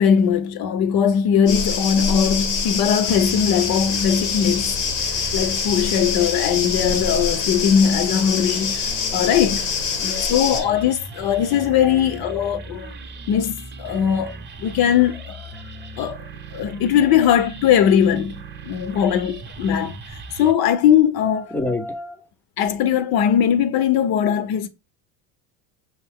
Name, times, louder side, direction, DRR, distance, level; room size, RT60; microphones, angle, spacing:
voice 1, 0.0-4.8 5.3-8.8 9.1-9.7 10.0-12.9 13.3-14.3 14.6-15.2 16.0-16.3 16.5-21.5 22.6-24.7, left 8 dB, 50° left, 0.6 m, -20 dB
sound 1, 1.5-10.6, left 6 dB, 90° left, 1.1 m, -25 dB
sound 2, 3.0-20.5, right 3 dB, 20° right, 0.7 m, -38 dB
voice 2, 9.9-10.7 11.5-12.2 12.6-12.9 14.1-14.2 15.3-15.7 16.7-16.8 21.3-22.3, left 2 dB, 5° left, 0.3 m, -33 dB
5.6 x 2.6 x 3.4 m
supercardioid pair, 115°, 49 cm